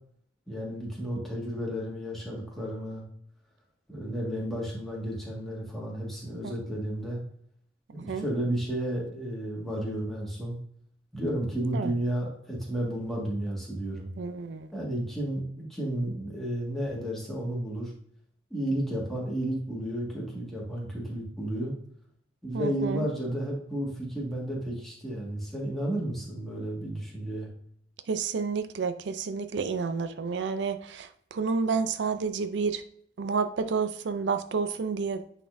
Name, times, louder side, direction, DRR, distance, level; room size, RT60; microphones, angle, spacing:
voice 1, 0.5-3.0 3.9-7.2 7.9-10.6 11.1-14.1 14.7-17.9 18.5-21.7 22.4-27.5, right 1 dB, ahead, -4 dB, 1.7 m, -32 dB
voice 2, 14.2-14.7 22.5-23.1 28.1-32.8 33.2-35.3, right 5 dB, 80° right, 10 dB, 0.4 m, -30 dB
9.1 x 4.1 x 2.6 m, 0.64 s
head